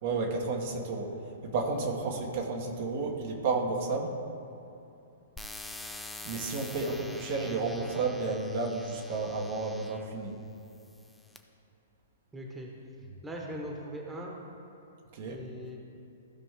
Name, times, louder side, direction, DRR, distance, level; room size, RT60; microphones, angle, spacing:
voice 1, 0.0-1.1 1.4-4.1 6.2-10.4 15.1-15.4, right 3 dB, 50° right, 0 dB, 1.3 m, -32 dB
sound 1, 5.4-10.1 10.8-11.4, left 2 dB, 5° left, 0.6 m, -45 dB
voice 2, 12.3-12.7 13.2-14.3 15.2-15.8, equal, 10° right, -1 dB, 1.4 m, -40 dB
15.0 x 5.2 x 3.7 m, 2.8 s
figure-of-eight pair, 115°, 0 cm